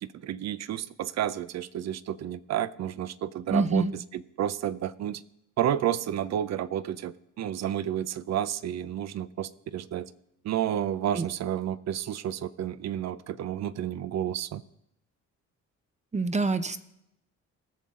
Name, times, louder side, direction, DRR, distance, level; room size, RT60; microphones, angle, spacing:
voice 1, 0.0-5.2 5.6-10.1 10.4-14.6, right 10 dB, 60° right, 0.6 m, -31 dB
voice 2, 3.5-3.9 11.1-11.3 16.1-16.8, right 3 dB, 25° right, 0.7 m, -25 dB
19.0 x 6.9 x 3.7 m
cardioid pair, 90°, 30 cm